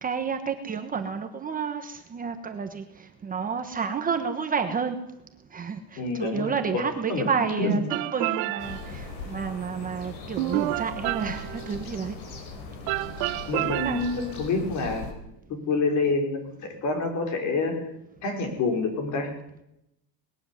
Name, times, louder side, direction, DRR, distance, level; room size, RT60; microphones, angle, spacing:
voice 1, 0.0-5.0 5.5-12.1 13.7-14.0, right 6 dB, 20° right, 6 dB, 1.2 m, -30 dB
voice 2, 6.0-6.8 7.1-7.3 7.6-7.8 13.5-15.1 15.5-16.4 16.8-17.8 18.2-19.3, left 3 dB, 40° left, 4 dB, 5.3 m, -27 dB
sound 1, 7.9-9.0 10.4-11.8 12.9-14.3, right 19 dB, 75° right, 0.9 m, -30 dB
sound 2, 8.6-15.1, left 4 dB, 65° left, 5.0 m, -40 dB
20.5 x 13.0 x 10.0 m, 0.82 s
cardioid pair, 175°, 43 cm